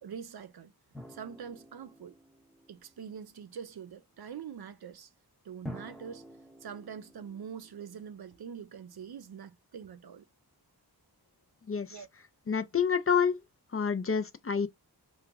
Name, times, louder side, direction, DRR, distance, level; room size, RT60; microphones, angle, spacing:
voice 1, 0.0-0.7 1.1-2.1 2.7-5.1 5.4-6.3 6.6-10.2 11.9-12.1, right 7 dB, 70° right, 0.5 m, -44 dB
sound 1, 0.9-3.3 5.7-8.6, left 1 dB, ahead, 0.7 m, -49 dB
voice 2, 11.7-12.0 12.5-13.4 13.7-14.7, left 6 dB, 35° left, 0.4 m, -28 dB
2.9 x 2.3 x 3.4 m
wide cardioid pair, 65°, 40 cm